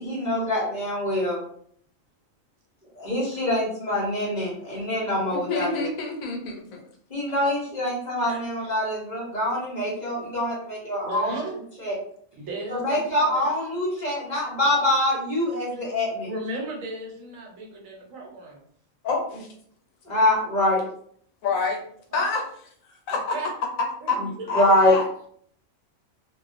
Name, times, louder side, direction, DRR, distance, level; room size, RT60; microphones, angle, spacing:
voice 1, 0.0-1.4 3.0-5.8 7.1-11.3 11.8-12.0 12.7-16.3 20.1-20.8 24.5-25.0, left 1 dB, 40° left, -5 dB, 0.8 m, -24 dB
voice 2, 5.3-6.8 8.3-8.4 19.0-19.5 21.4-21.8 22.1-22.4 23.1-23.4 24.1-24.2 24.5-25.0, left 3 dB, 80° left, 1 dB, 1.1 m, -27 dB
voice 3, 11.0-11.6 12.4-13.5 15.8-15.9 16.2-18.6 21.4-21.6 22.1-22.5 23.1-23.5 24.0-24.8, right 2 dB, 75° right, -1 dB, 1.1 m, -35 dB
2.3 x 2.2 x 2.4 m, 0.63 s
omnidirectional pair, 1.4 m